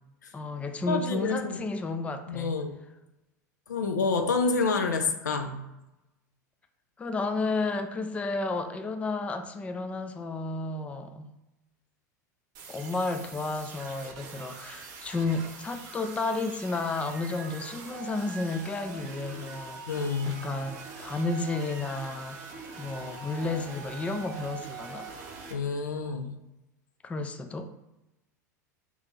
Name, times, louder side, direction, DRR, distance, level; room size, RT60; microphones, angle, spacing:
voice 1, 0.3-2.6 7.0-11.3 12.7-22.4 22.8-25.1 27.0-27.7, left 3 dB, 15° left, 8 dB, 0.3 m, -32 dB
voice 2, 0.9-1.6 2.3-2.8 3.7-5.6 19.9-20.4 25.5-26.3, left 4 dB, 80° left, 6 dB, 0.4 m, -28 dB
sound 1, 12.5-25.5, right 5 dB, 45° right, 0.9 m, -43 dB
2.9 x 2.7 x 3.6 m, 0.96 s
figure-of-eight pair, 85°, 10 cm